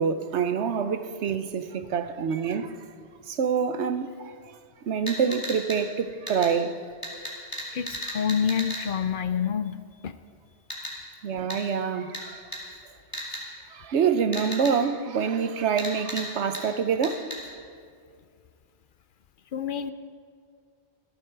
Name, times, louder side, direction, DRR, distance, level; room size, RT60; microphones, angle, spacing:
voice 1, 0.0-2.8 3.3-4.3 4.9-6.7 11.2-12.4 13.7-17.3, right 6 dB, 85° right, 1.1 m, -26 dB
sound 1, 5.1-5.8 6.3-6.5 7.0-8.8 10.7-10.9 11.5-11.6 12.1-12.2 12.5-12.6 13.1-13.4 14.3-14.7 15.8-16.2 16.5-16.6 17.0-17.4, equal, 20° left, 3.6 m, -34 dB
voice 2, 7.7-10.1 19.5-19.9, left 7 dB, 55° left, 0.7 m, -28 dB
20.5 x 14.5 x 4.6 m
omnidirectional pair, 1.1 m